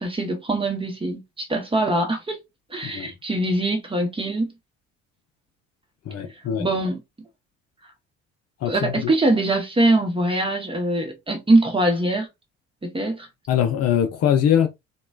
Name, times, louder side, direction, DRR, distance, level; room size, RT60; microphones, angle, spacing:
voice 1, 0.0-2.4 2.7-4.5 6.6-7.0 8.6-12.3 12.8-13.3, right 1 dB, 15° right, 0.9 m, -22 dB
voice 2, 6.1-6.7 8.6-9.1 13.5-14.7, left 9 dB, 40° left, 0.6 m, -22 dB
3.0 x 2.3 x 2.3 m
figure-of-eight pair, 55°, 36 cm